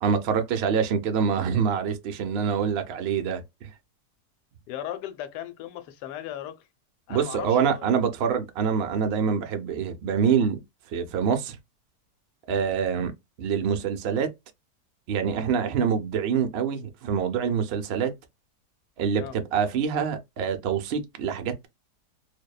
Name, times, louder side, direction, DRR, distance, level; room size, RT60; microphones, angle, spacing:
voice 1, 0.0-3.7 7.1-10.6 10.9-11.6 12.5-13.1 13.4-14.3 15.1-18.1 19.0-21.7, right 7 dB, 85° right, 0.5 m, -25 dB
voice 2, 4.7-6.6 7.1-7.9 19.2-19.3, left 11 dB, 80° left, 1.2 m, -37 dB
2.7 x 2.1 x 2.2 m
omnidirectional pair, 1.8 m